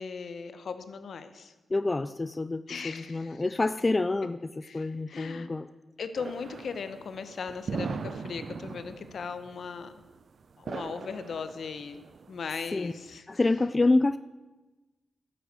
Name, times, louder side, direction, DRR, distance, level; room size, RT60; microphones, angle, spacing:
voice 1, 0.0-1.5 2.7-3.4 4.6-5.5 6.0-10.0 10.6-12.0 12.3-13.2, left 5 dB, 70° left, 10 dB, 1.1 m, -38 dB
voice 2, 1.7-5.7 12.7-12.9 13.3-14.2, left 2 dB, 30° left, 13 dB, 0.4 m, -27 dB
sound 1, 6.1-13.2, right 5 dB, 60° right, 0.6 m, -40 dB
13.0 x 7.8 x 8.1 m, 1.2 s
cardioid pair, 75°, 0 cm